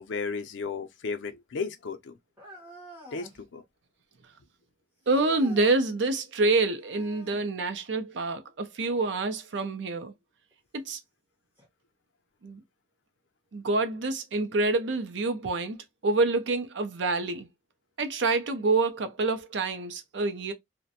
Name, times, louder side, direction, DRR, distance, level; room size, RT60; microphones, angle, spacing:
voice 1, 0.0-2.2 3.1-3.6, left 4 dB, 80° left, 0.5 m, -34 dB
sound 1, 2.4-3.4 5.0-5.8 6.8-7.5 9.6-9.7 10.5-10.6 11.6-11.7, left 1 dB, 10° right, 1.0 m, -47 dB
voice 2, 5.1-10.1 10.7-11.0 12.4-12.6 13.5-15.8 16.0-17.5 18.0-20.5, right 3 dB, 75° right, 0.5 m, -27 dB
2.5 x 2.1 x 2.6 m
head